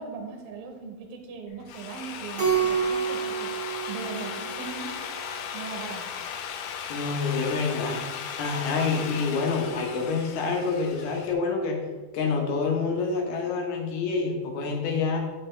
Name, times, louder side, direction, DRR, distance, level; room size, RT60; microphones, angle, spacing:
voice 1, 0.0-5.0 5.5-6.2, right 5 dB, 70° right, 3 dB, 2.5 m, -39 dB
Drill, 1.5-11.3, left 7 dB, 90° left, 2.1 m, -37 dB
Keyboard (musical), 2.4-5.0, right 7 dB, 45° right, 2.0 m, -28 dB
voice 2, 6.9-8.0 8.4-11.8 12.1-15.2, left 4 dB, 75° left, 1 dB, 2.8 m, -27 dB
8.3 x 6.4 x 3.2 m, 1.2 s
omnidirectional pair, 4.9 m